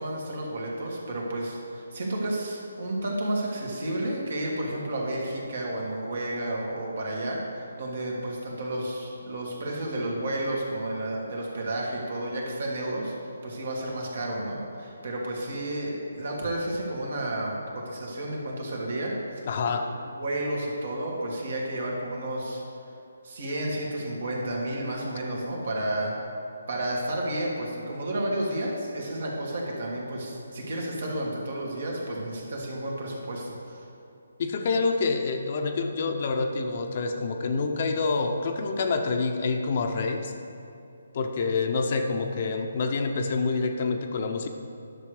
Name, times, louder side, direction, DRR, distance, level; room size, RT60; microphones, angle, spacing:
voice 1, 0.0-13.1 13.4-19.1 20.2-22.6 23.2-26.1 26.7-33.8, right 1 dB, 65° right, -2 dB, 2.5 m, -31 dB
voice 2, 19.5-19.9 34.4-40.3 41.1-44.5, left 4 dB, 45° left, 5 dB, 0.8 m, -27 dB
10.5 x 6.7 x 5.0 m, 2.6 s
hypercardioid pair, 160°, 0 cm